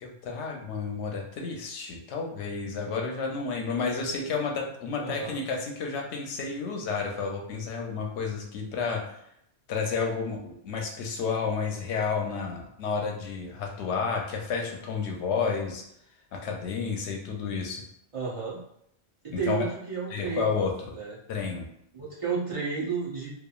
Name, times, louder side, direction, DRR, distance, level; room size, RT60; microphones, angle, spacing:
voice 1, 0.0-9.0 9.7-15.8 16.3-17.8 19.3-19.7 20.1-20.7 21.3-21.7, left 5 dB, 90° left, 1 dB, 0.9 m, -31 dB
voice 2, 5.0-5.4 18.1-18.6 19.2-20.6 20.9-21.2 21.9-23.3, right 5 dB, 45° right, -6 dB, 0.5 m, -32 dB
2.9 x 2.3 x 2.3 m, 0.73 s
omnidirectional pair, 1.1 m